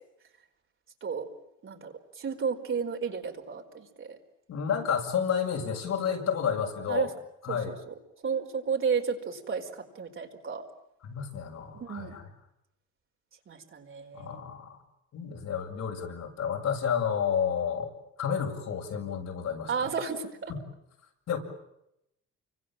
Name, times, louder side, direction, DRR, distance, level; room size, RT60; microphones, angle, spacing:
voice 1, 1.6-4.2 6.9-7.1 7.5-7.9 8.2-10.6 11.7-12.2 13.5-14.4 19.7-20.5, right 6 dB, 45° right, 3 dB, 4.6 m, -33 dB
voice 2, 4.5-7.1 7.4-7.8 11.0-12.3 14.1-14.8 15.1-17.9 18.2-19.9 21.3-21.4, left 7 dB, 65° left, 1 dB, 7.3 m, -30 dB
29.5 x 25.0 x 7.7 m, 0.83 s
cardioid pair, 105°, 29 cm